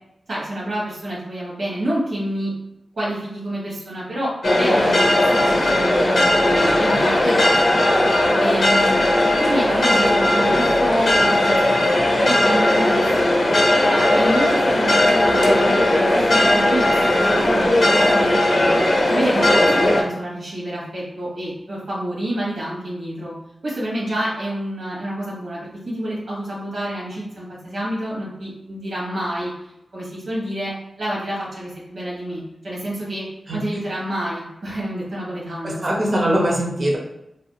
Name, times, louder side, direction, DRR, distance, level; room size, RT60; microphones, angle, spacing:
voice 1, 0.3-2.5 3.0-8.1 8.4-11.8 12.2-13.5 13.9-17.0 17.2-18.8 19.1-23.3 23.6-30.7 31.0-33.2 33.5-36.0, right 1 dB, 75° right, -7 dB, 1.4 m, -28 dB
sound 1, 4.4-20.0, left 1 dB, 70° left, 0.8 m, -17 dB
voice 2, 6.6-7.0 33.5-33.6 35.6-37.0, right 1 dB, 50° right, -2 dB, 0.7 m, -22 dB
3.4 x 2.6 x 2.3 m, 0.86 s
wide cardioid pair, 90°, 0 cm